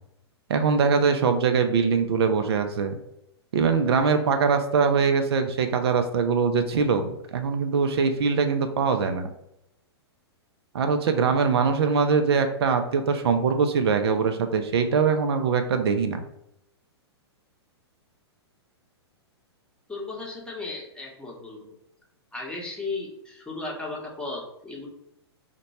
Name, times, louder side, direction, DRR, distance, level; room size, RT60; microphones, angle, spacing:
voice 1, 0.5-3.0 3.5-9.3 10.7-16.2, right 5 dB, 70° right, 7 dB, 0.5 m, -22 dB
voice 2, 19.9-21.7 22.3-24.9, left 3 dB, 5° left, -2 dB, 0.8 m, -35 dB
2.9 x 2.2 x 4.1 m, 0.80 s
hypercardioid pair, 115°, 14 cm